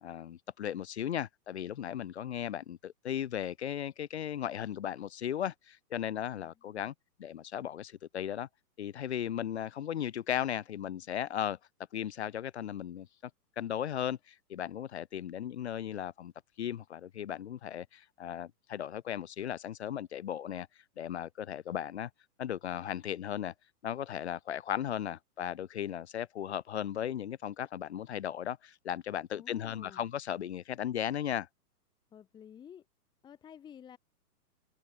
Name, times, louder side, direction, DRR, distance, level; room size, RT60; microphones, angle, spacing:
voice 1, 0.0-8.5 8.8-11.6 11.9-13.3 13.6-16.3 16.6-20.7 21.0-22.1 22.4-23.5 23.8-31.5, left 10 dB, 45° left, 0.4 m, -36 dB
voice 2, 6.3-6.9 29.3-30.1 32.1-32.9 33.2-34.0, left 9 dB, 10° left, 1.6 m, -52 dB
hypercardioid pair, 165°, 48 cm